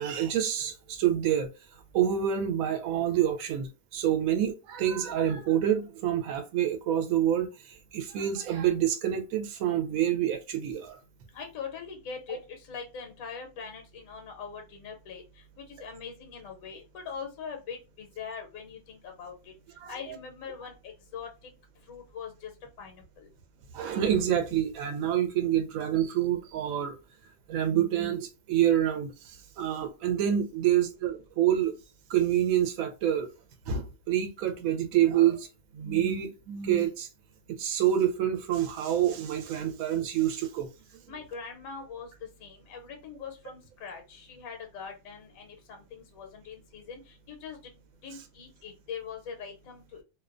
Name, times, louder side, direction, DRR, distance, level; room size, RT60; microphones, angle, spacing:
voice 1, 0.0-1.5 1.9-11.0 19.8-19.9 23.7-26.9 27.5-31.7 32.1-33.3 33.7-35.5 35.7-37.1 37.6-40.7, right 10 dB, 80° right, 1.0 m, -27 dB
voice 2, 11.3-15.2 15.6-19.5 19.9-21.3 21.9-22.5 22.8-23.3 41.1-42.1 42.4-47.7 48.0-50.0, left 6 dB, 75° left, 1.0 m, -42 dB
2.5 x 2.1 x 2.4 m
omnidirectional pair, 1.5 m